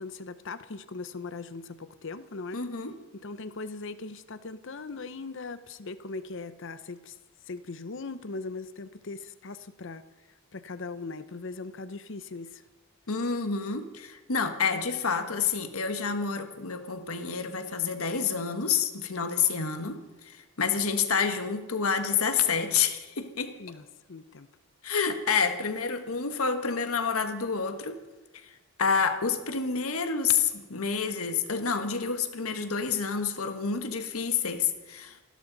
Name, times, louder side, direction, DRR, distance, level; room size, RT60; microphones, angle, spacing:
voice 1, 0.0-2.6 3.2-7.2 7.5-10.0 10.5-12.6 23.6-24.5, left 3 dB, 60° left, 13 dB, 0.8 m, -39 dB
voice 2, 2.5-2.9 13.1-23.5 24.8-28.0 28.4-28.5 28.8-35.2, left 6 dB, 90° left, 8 dB, 1.4 m, -28 dB
28.0 x 12.5 x 4.0 m, 1.2 s
head